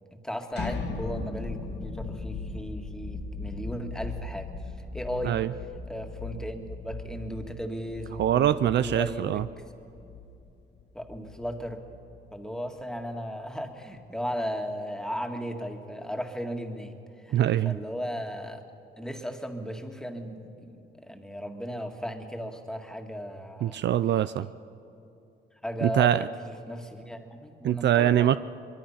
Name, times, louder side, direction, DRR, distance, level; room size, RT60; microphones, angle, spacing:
voice 1, 0.1-4.5 4.9-5.5 5.9-9.4 10.9-11.8 12.3-17.0 17.2-17.4 17.7-18.6 19.0-23.8 25.6-28.4, equal, 5° left, 4 dB, 2.0 m, -36 dB
sound 1, 0.5-12.3, left 3 dB, 60° left, 2.1 m, -38 dB
voice 2, 8.2-9.4 17.3-17.8 23.6-24.5 25.8-26.3 27.6-28.4, right 11 dB, 60° right, 14 dB, 0.5 m, -23 dB
24.0 x 22.5 x 5.8 m, 2.7 s
cardioid pair, 90°, 20 cm